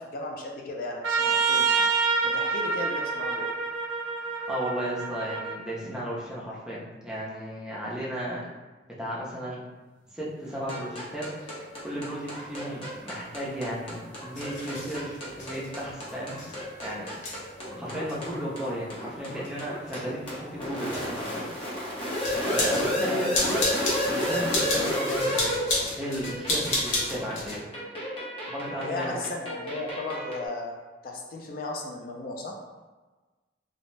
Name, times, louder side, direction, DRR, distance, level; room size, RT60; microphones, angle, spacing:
voice 1, 0.0-1.9 2.2-3.5 23.0-23.3 28.8-30.7 31.0-32.5, left 2 dB, 50° left, 0 dB, 0.3 m, -35 dB
Trumpet, 1.0-5.6, right 4 dB, 80° right, 0.4 m, -27 dB
voice 2, 4.5-8.5 9.0-9.6 10.1-16.4 16.8-17.1 17.7-21.5 22.4-23.6 24.0-25.5 25.8-27.7 28.5-29.2, equal, 5° right, -7 dB, 0.5 m, -34 dB
sound 1, 10.5-10.6 11.3-11.5 12.5-27.6, left 2 dB, 90° left, 0.8 m, -34 dB
sound 2, 10.7-30.5, equal, 30° left, 0.7 m, -32 dB
2.5 x 2.0 x 3.1 m, 1.2 s
head